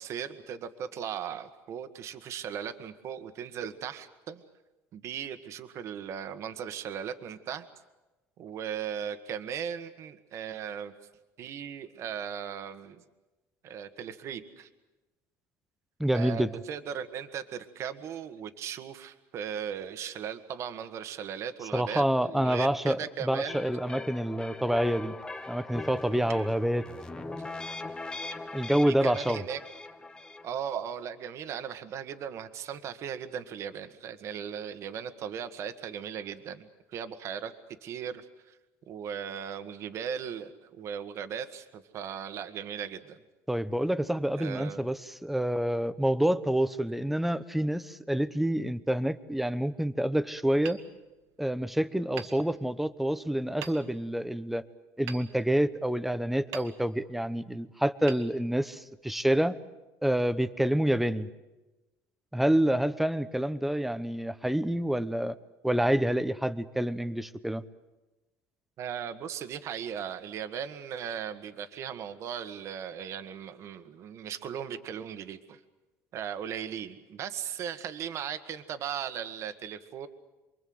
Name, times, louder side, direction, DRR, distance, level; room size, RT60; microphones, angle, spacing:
voice 1, 0.0-4.4 4.9-7.7 8.4-10.9 11.4-13.0 13.6-14.7 16.1-23.7 26.1-26.5 28.9-29.6 30.4-37.5 37.8-38.6 38.9-43.2 44.4-44.9 68.8-75.6 76.1-80.1, right 8 dB, 45° right, 10 dB, 1.7 m, -37 dB
voice 2, 16.0-16.5 21.7-25.2 25.5-26.9 27.1-27.5 28.5-29.4 43.5-50.8 51.4-54.6 55.0-59.5 60.0-61.3 62.3-65.3 65.6-67.6, right 1 dB, 5° right, 13 dB, 0.9 m, -27 dB
sound 1, 23.5-30.5, left 3 dB, 15° left, 1.1 m, -41 dB
Hammer, 50.6-51.6 52.1-53.1 53.6-54.2 55.1-56.0 56.5-57.2 58.0-59.0, right 10 dB, 70° right, 1.9 m, -46 dB
28.5 x 23.0 x 8.0 m, 1.1 s
cardioid pair, 140°, 7 cm